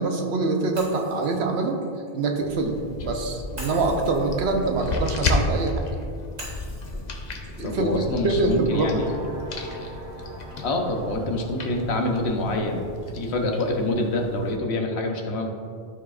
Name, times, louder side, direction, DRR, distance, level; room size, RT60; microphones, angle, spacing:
voice 1, 0.0-1.8 2.1-5.9 7.6-7.9 8.2-9.2, right 3 dB, 90° right, 3 dB, 1.1 m, -24 dB
Shatter, 0.8-2.8 3.6-5.7 6.4-8.5, right 1 dB, 40° right, 1.5 m, -44 dB
sound 1, 2.4-14.6, left 2 dB, 50° left, 0.7 m, -33 dB
voice 2, 7.6-9.0 10.6-12.8 13.1-15.5, left 2 dB, 90° left, 2 dB, 1.2 m, -26 dB
sound 2, 8.7-14.0, right 2 dB, 60° right, 1.7 m, -41 dB
12.5 x 4.8 x 2.5 m, 2.3 s
omnidirectional pair, 1.1 m